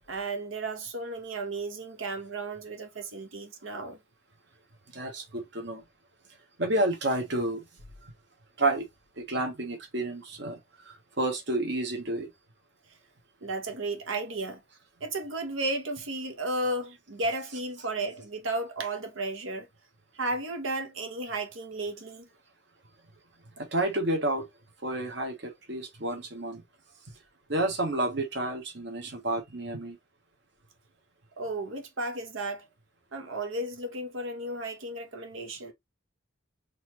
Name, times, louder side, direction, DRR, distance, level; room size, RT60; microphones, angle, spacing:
voice 1, 0.1-4.0 13.4-14.6 15.0-19.7 20.1-22.3 31.4-32.7 33.1-35.7, right 2 dB, 80° right, 1.0 m, -34 dB
voice 2, 4.9-5.8 6.6-7.7 8.0-8.1 8.6-8.9 9.2-12.3 23.6-24.5 24.8-26.6 27.5-30.0, right 1 dB, 60° right, 1.2 m, -30 dB
4.0 x 3.0 x 3.0 m
head